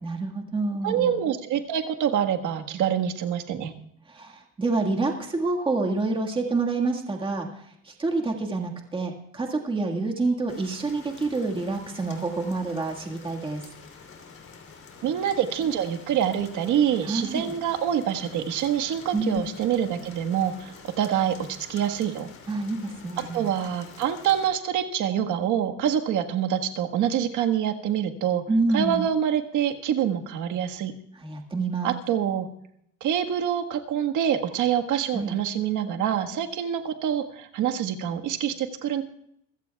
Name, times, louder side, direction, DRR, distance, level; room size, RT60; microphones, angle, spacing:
voice 1, 0.0-1.2 4.1-13.6 17.0-17.5 19.1-19.4 22.5-23.5 28.5-29.0 31.2-31.9 35.1-35.4, right 3 dB, 15° right, 1 dB, 1.7 m, -27 dB
voice 2, 0.8-3.7 15.0-22.3 23.2-28.4 28.7-31.0 31.8-32.5 33.0-39.0, right 9 dB, 65° right, 4 dB, 1.5 m, -26 dB
Rain, 10.5-24.5, left 5 dB, 40° left, 3.2 m, -47 dB
27.0 x 15.5 x 2.3 m, 0.74 s
cardioid pair, 170°, 32 cm